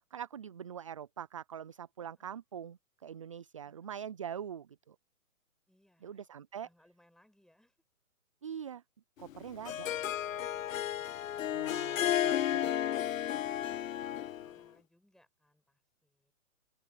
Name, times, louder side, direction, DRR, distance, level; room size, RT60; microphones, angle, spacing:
voice 1, 0.1-5.0 6.0-6.7 8.4-8.8 9.2-9.9 11.5-12.9, right 8 dB, 25° right, 0.4 m, -44 dB
voice 2, 5.7-6.3 6.6-7.8 14.1-16.3, left 1 dB, ahead, 7.4 m, -66 dB
Harp, 9.3-14.6, left 11 dB, 70° left, 0.6 m, -33 dB
hypercardioid pair, 135°, 41 cm